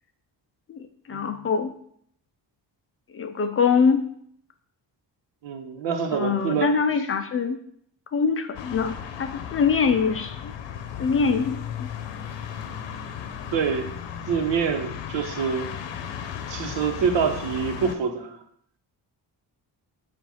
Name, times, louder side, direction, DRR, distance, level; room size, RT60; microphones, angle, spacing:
voice 1, 0.7-1.7 3.1-4.0 6.1-7.6 8.1-10.5 11.0-11.9, left 5 dB, 35° left, 7 dB, 0.4 m, -24 dB
voice 2, 5.4-6.7 13.5-13.9 14.3-15.7 16.5-18.4, right 6 dB, 85° right, 5 dB, 1.0 m, -26 dB
sound 1, 8.5-17.9, left 8 dB, 85° left, 0.7 m, -35 dB
7.4 x 2.5 x 5.5 m, 0.65 s
cardioid pair, 165°, 42 cm